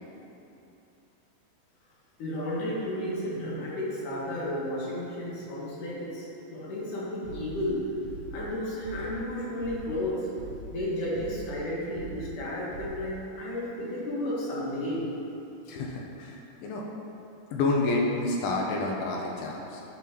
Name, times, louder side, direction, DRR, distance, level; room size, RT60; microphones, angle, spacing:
voice 1, 2.2-7.8 8.3-10.3 10.7-15.1, left 1 dB, 60° left, -7 dB, 2.8 m, -32 dB
sound 1, 7.2-13.3, right 2 dB, 75° right, 3.3 m, -43 dB
voice 2, 15.7-16.8 17.5-19.8, left 2 dB, 80° left, -1 dB, 2.3 m, -29 dB
10.5 x 5.4 x 3.0 m, 2.9 s
omnidirectional pair, 4.7 m